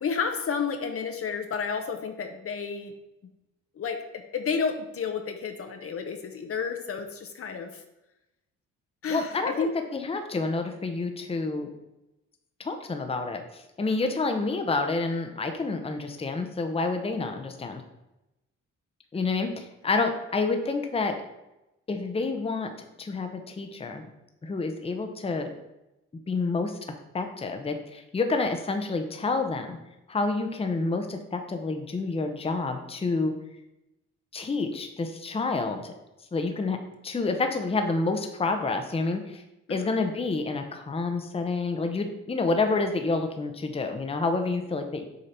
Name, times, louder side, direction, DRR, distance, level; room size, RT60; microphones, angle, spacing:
voice 1, 0.0-2.9 3.8-7.8 9.0-9.7 39.7-39.8, left 5 dB, 50° left, 6 dB, 0.8 m, -31 dB
voice 2, 9.1-11.7 12.6-17.8 19.1-21.2 21.9-24.0 24.4-25.5 26.3-26.7 27.1-29.8 30.1-33.3 34.3-35.9 36.3-36.8 37.0-39.4 39.7-45.1, left 3 dB, 20° left, 5 dB, 0.8 m, -28 dB
6.6 x 3.8 x 4.4 m, 0.93 s
cardioid pair, 90°, 30 cm